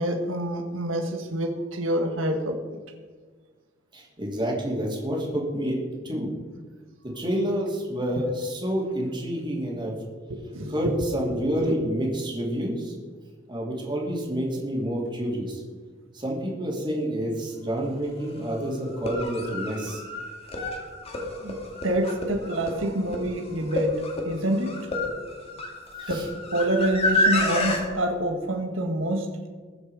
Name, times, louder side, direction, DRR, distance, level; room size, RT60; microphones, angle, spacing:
voice 1, 0.0-2.6 10.3-10.9 11.3-11.7 21.4-21.6 21.8-24.8 26.1-29.5, right 1 dB, 90° right, 4 dB, 1.5 m, -27 dB
voice 2, 3.9-5.8 6.0-6.3 7.0-10.0 10.7-12.9 13.5-15.6 16.1-20.0 26.0-26.3, equal, 25° right, -2 dB, 2.9 m, -28 dB
sound 1, 17.8-17.9 18.9-27.8, left 1 dB, 30° left, 2.3 m, -29 dB
21.0 x 7.2 x 4.9 m, 1.5 s
head